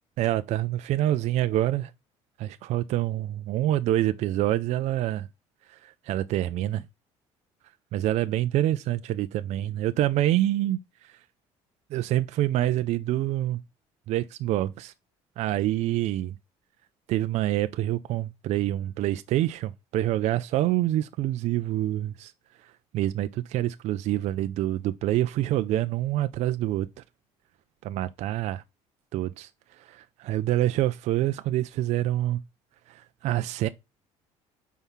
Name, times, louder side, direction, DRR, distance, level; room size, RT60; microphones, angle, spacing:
voice 1, 0.2-1.9 2.4-5.3 5.8-6.8 7.9-10.8 11.9-13.6 14.1-14.9 15.4-16.3 17.1-22.3 22.9-26.9 27.8-28.6 29.1-29.5 29.9-32.4 32.9-33.7, right 14 dB, 65° right, 0.5 m, -26 dB
5.5 x 4.7 x 5.7 m
cardioid pair, 115°, 13 cm